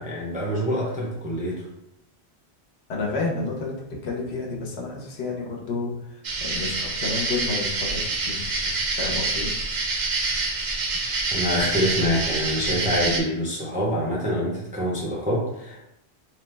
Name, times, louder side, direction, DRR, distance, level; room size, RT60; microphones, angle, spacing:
voice 1, 0.0-1.6 11.3-15.8, equal, 10° right, -4 dB, 0.4 m, -26 dB
voice 2, 2.9-9.5, left 3 dB, 80° left, -1 dB, 1.0 m, -31 dB
sound 1, 6.2-13.2, right 3 dB, 55° right, 0.6 m, -27 dB
3.1 x 2.0 x 3.3 m, 0.84 s
omnidirectional pair, 1.1 m